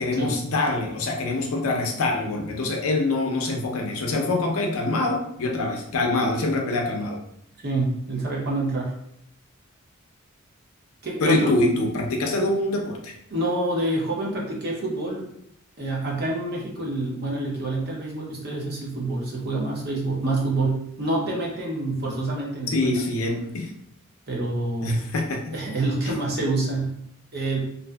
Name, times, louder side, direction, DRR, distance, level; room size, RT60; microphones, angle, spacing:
voice 1, 0.0-7.2 11.2-13.1 22.7-23.7 24.8-25.4, left 2 dB, 75° left, 2 dB, 0.5 m, -24 dB
voice 2, 7.6-8.9 11.0-11.5 13.3-15.3 15.8-23.0 24.3-25.0 25.5-27.0 27.3-27.6, right 2 dB, 50° right, -2 dB, 0.7 m, -27 dB
2.6 x 2.5 x 2.2 m, 0.74 s
head